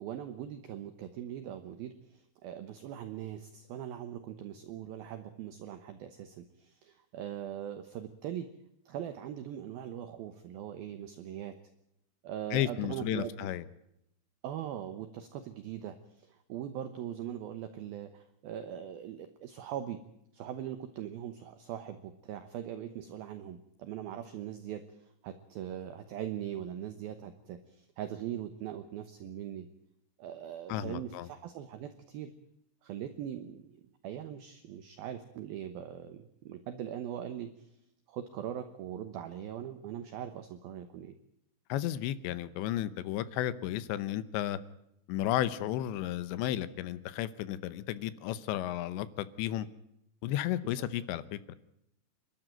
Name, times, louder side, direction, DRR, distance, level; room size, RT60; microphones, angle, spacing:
voice 1, 0.0-8.5 8.9-11.6 12.2-13.3 14.4-20.0 20.3-29.7 30.2-32.3 32.8-33.7 34.0-37.5 38.1-41.2 50.6-50.8, right 10 dB, 70° right, 9 dB, 2.4 m, -41 dB
voice 2, 12.5-13.7 30.7-31.3 41.7-44.6 45.1-49.7 50.2-51.5, left 12 dB, 75° left, 14 dB, 3.1 m, -33 dB
28.5 x 12.5 x 9.2 m, 0.79 s
omnidirectional pair, 5.4 m